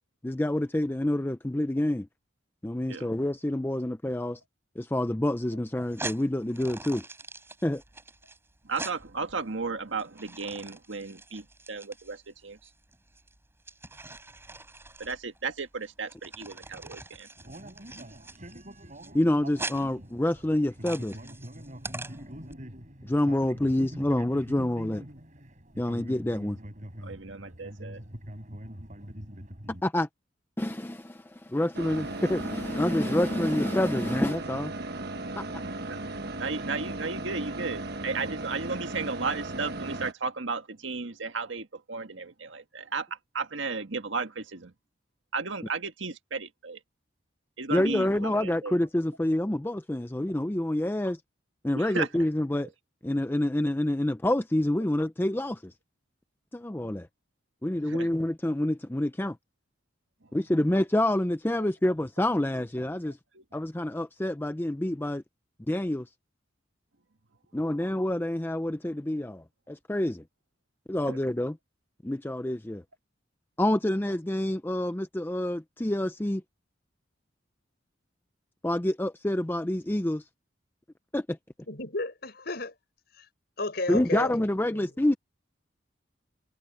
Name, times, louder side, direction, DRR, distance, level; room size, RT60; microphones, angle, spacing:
voice 1, 0.2-2.1 2.6-4.4 4.8-7.0 7.6-7.8 19.1-21.2 23.0-25.0 25.8-26.6 29.7-30.1 30.6-34.7 35.4-35.6 47.7-51.2 51.6-52.7 53.0-55.7 56.5-57.1 57.6-59.4 60.3-63.2 63.5-65.2 65.7-66.1 67.5-70.2 70.9-71.6 72.0-72.8 73.6-76.4 78.6-80.2 81.1-81.4 83.9-85.1, left 1 dB, 10° left, 0.5 m, -27 dB
sound 1, 5.8-22.5, right 2 dB, 15° right, 5.6 m, -43 dB
voice 2, 8.6-12.6 15.0-17.3 27.0-28.0 35.9-36.0 36.4-44.7 45.3-46.8 47.6-48.7 51.7-52.1 57.9-58.1 61.6-61.7 63.3-63.4 71.1-71.2, right 4 dB, 90° right, 1.7 m, -34 dB
sound 2, 17.4-29.8, equal, 40° right, 4.9 m, -44 dB
sound 3, 31.7-40.1, right 2 dB, 60° right, 1.4 m, -36 dB
voice 3, 81.7-82.7 83.2-83.3 83.6-84.3 84.7-84.9, left 2 dB, 60° left, 6.9 m, -33 dB
head